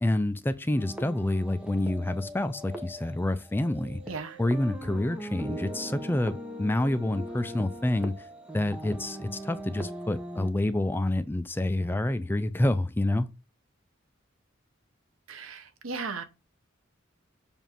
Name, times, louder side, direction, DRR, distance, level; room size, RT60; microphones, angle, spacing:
voice 1, 0.0-4.0 4.4-8.1 8.5-13.3, left 1 dB, 10° left, 0.4 m, -28 dB
sound 1, 0.7-10.5, equal, 5° right, 0.8 m, -40 dB
voice 2, 4.1-4.4 15.3-16.2, right 4 dB, 85° right, 0.8 m, -36 dB
7.1 x 2.6 x 5.7 m
head